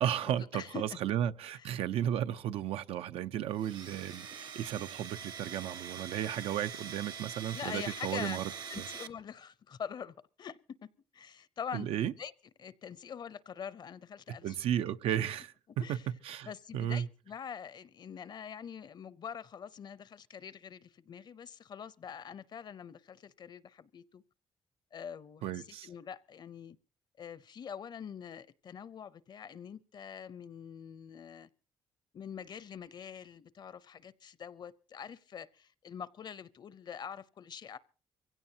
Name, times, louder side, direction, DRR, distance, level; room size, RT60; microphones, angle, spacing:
voice 1, 0.0-8.8 11.7-12.1 14.3-15.5 15.9-16.0 16.2-17.1 25.4-25.9, right 10 dB, 90° right, 0.7 m, -34 dB
Domestic sounds home sounds, 3.6-9.1, right 7 dB, 50° right, 0.9 m, -44 dB
voice 2, 7.5-8.4 8.7-10.6 11.1-12.3 12.6-14.6 15.8-16.1 16.5-24.2 24.9-26.8 27.2-31.5 32.1-37.8, left 7 dB, 50° left, 0.7 m, -44 dB
24.0 x 16.5 x 2.8 m
cardioid pair, 120°, 10 cm